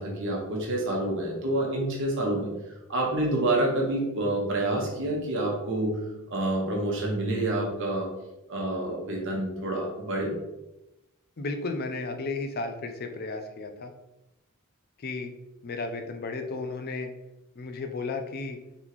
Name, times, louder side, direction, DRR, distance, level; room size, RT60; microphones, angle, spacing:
voice 1, 0.0-2.5 2.9-8.1 8.5-10.3, right 1 dB, 65° right, -1 dB, 1.2 m, -28 dB
voice 2, 11.4-13.9 15.0-15.3 15.6-17.1 17.6-18.6, left 3 dB, 50° left, 6 dB, 0.5 m, -33 dB
4.0 x 3.6 x 3.0 m, 0.94 s
head